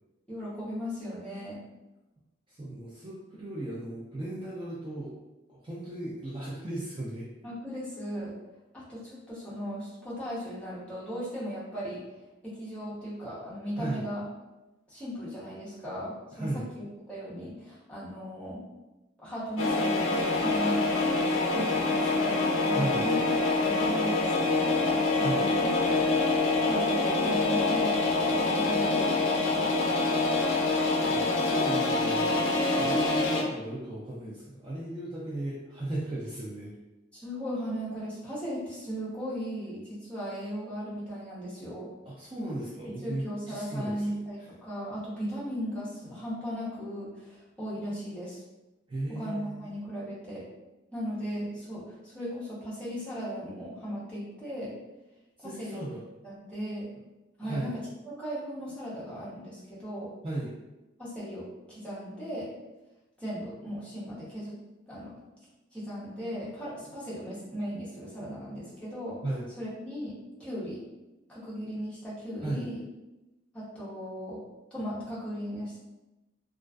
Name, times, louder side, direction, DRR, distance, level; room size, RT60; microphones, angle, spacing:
voice 1, 0.3-1.6 7.4-8.3 8.7-12.0 12.4-14.2 14.9-18.6 19.2-23.2 23.5-26.2 26.6-29.7 37.1-41.9 43.0-48.4 49.2-50.5 50.9-54.7 55.4-55.9 56.2-56.9 57.4-57.7 58.0-60.1 61.0-62.5 63.2-64.6 64.9-65.1 65.7-69.2 69.6-70.1 70.4-70.8 71.3-72.8 73.5-74.4 74.7-75.8, equal, 5° left, -9 dB, 0.7 m, -37 dB
voice 2, 2.5-5.1 5.5-7.3 13.8-14.0 16.3-16.7 22.7-23.1 25.1-25.4 31.1-32.4 32.8-36.7 42.1-44.5 48.9-49.6 55.4-56.0 57.4-57.7 60.2-60.5 69.2-69.5 72.4-72.7, right 1 dB, 25° right, -7 dB, 0.4 m, -36 dB
sound 1, 19.6-33.4, left 3 dB, 80° left, 0.4 m, -26 dB
2.3 x 2.3 x 2.3 m, 1.0 s
head